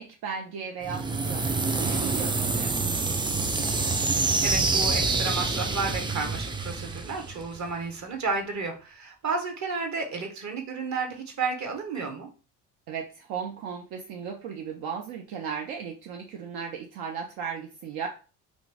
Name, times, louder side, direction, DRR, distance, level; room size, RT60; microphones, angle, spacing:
voice 1, 0.0-2.7 12.9-18.1, right 6 dB, 75° right, 2 dB, 0.6 m, -36 dB
sound 1, 0.8-7.7, right 3 dB, 15° right, 0.4 m, -27 dB
voice 2, 4.4-12.3, right 4 dB, 45° right, 4 dB, 1.1 m, -32 dB
2.9 x 2.5 x 3.3 m, 0.35 s
hypercardioid pair, 60°, 39 cm